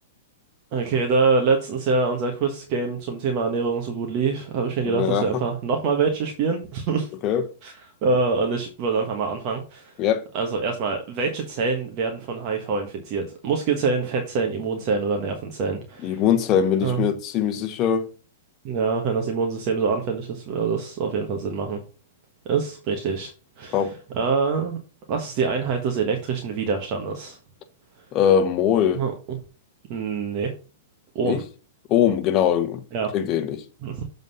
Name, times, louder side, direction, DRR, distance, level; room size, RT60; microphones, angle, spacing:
voice 1, 0.7-7.1 7.6-7.7 8.0-9.9 10.3-16.2 16.8-17.1 18.6-21.8 22.4-23.3 23.6-24.8 25.1-27.4 28.9-29.4 29.9-30.5 31.1-31.4 32.9-33.1 33.8-34.0, right 4 dB, 40° right, 1.4 m, -25 dB
voice 2, 4.8-5.3 7.2-7.4 10.0-10.3 16.0-18.1 23.7-23.9 28.1-29.0 31.2-31.4 31.9-32.8 33.1-33.6, left 9 dB, 30° left, 1.0 m, -21 dB
7.3 x 4.0 x 5.5 m
hypercardioid pair, 140°, 0 cm